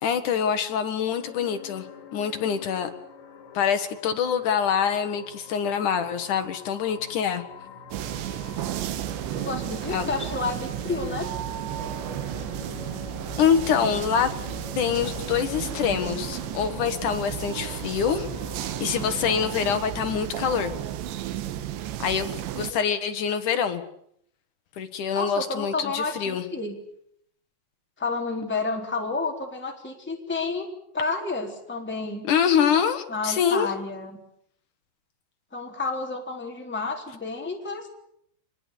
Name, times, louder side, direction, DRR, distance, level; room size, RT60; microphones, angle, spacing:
voice 1, 0.0-1.9 2.1-2.9 3.5-7.4 9.9-10.1 13.4-14.3 14.8-18.3 18.6-20.7 22.0-22.3 22.6-23.8 24.8-26.4 32.3-33.7, left 7 dB, 60° left, 8 dB, 2.3 m, -25 dB
sound 1, 1.2-19.5, left 6 dB, 80° left, 5.2 m, -45 dB
sound 2, 7.9-22.7, right 11 dB, 85° right, 3.5 m, -33 dB
voice 2, 9.3-11.3 25.1-26.8 28.0-30.7 30.9-32.3 33.1-34.1 35.5-37.9, left 3 dB, 5° left, 2 dB, 3.1 m, -30 dB
26.0 x 22.0 x 8.4 m, 0.70 s
omnidirectional pair, 5.1 m